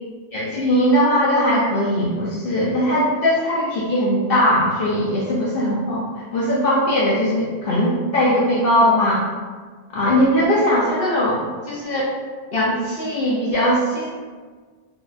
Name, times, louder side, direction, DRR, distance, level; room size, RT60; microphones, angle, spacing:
voice 1, 0.3-6.0 6.3-9.2 9.9-12.1 12.5-14.1, equal, 65° left, -6 dB, 0.7 m, -19 dB
4.2 x 2.2 x 2.4 m, 1.5 s
omnidirectional pair, 1.1 m